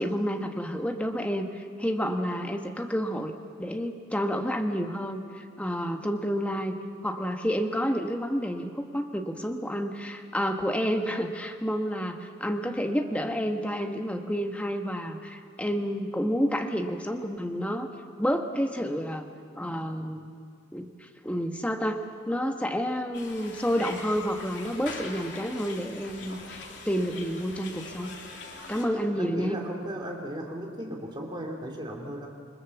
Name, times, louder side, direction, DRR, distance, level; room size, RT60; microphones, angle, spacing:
voice 1, 0.0-3.3 3.6-6.7 7.0-17.9 18.2-19.3 19.6-20.4 20.7-22.0 22.3-26.6 26.8-28.1 28.7-29.6, equal, 5° left, 4 dB, 1.4 m, -29 dB
sound 1, 23.1-28.8, left 3 dB, 70° left, 3.4 m, -42 dB
voice 2, 29.2-32.3, equal, 25° right, 1 dB, 3.1 m, -36 dB
28.5 x 21.5 x 7.2 m, 2.4 s
head